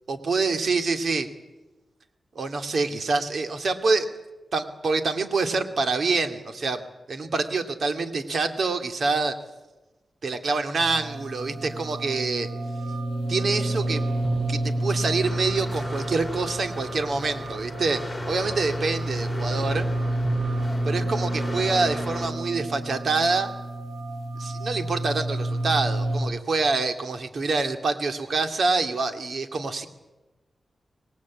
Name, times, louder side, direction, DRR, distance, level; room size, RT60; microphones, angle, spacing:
voice 1, 0.1-1.3 2.3-4.1 4.5-9.3 10.2-12.5 13.3-14.0 14.5-19.9 20.8-23.5 24.4-29.9, right 3 dB, 65° right, 7 dB, 2.4 m, -26 dB
sound 1, 10.8-26.2, right 1 dB, 85° right, 7.4 m, -29 dB
sound 2, 15.2-22.3, left 2 dB, 10° left, 3.7 m, -38 dB
25.0 x 19.5 x 8.5 m, 1.1 s
wide cardioid pair, 85°, 0 cm